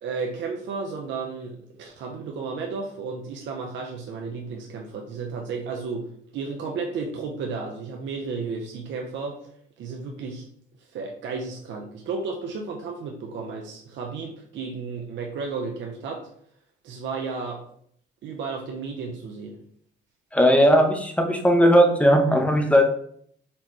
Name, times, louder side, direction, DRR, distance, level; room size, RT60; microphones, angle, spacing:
voice 1, 0.0-6.1 6.3-9.5 9.8-10.5 10.8-16.2 16.8-17.6 18.2-19.6, right 4 dB, 70° right, 0 dB, 0.5 m, -33 dB
voice 2, 20.3-22.8, equal, 5° left, 4 dB, 0.6 m, -17 dB
4.1 x 2.2 x 3.0 m, 0.65 s
cardioid pair, 90°, 20 cm